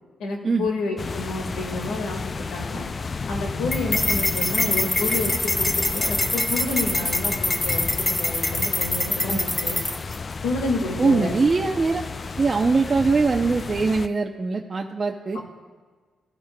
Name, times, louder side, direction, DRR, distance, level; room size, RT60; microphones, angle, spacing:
voice 1, 0.2-2.2 2.5-2.9 3.3-9.8 10.4-11.3 15.3-15.4, left 2 dB, 90° left, 2 dB, 1.7 m, -29 dB
sound 1, 1.0-14.1, left 4 dB, 40° left, 0.3 m, -32 dB
sound 2, 3.7-10.2, left 2 dB, 20° left, 0.8 m, -25 dB
voice 2, 9.1-9.4 11.0-12.0 12.4-15.4, right 4 dB, 35° right, 2 dB, 0.6 m, -22 dB
16.0 x 11.0 x 2.2 m, 1.4 s
cardioid pair, 75°, 0 cm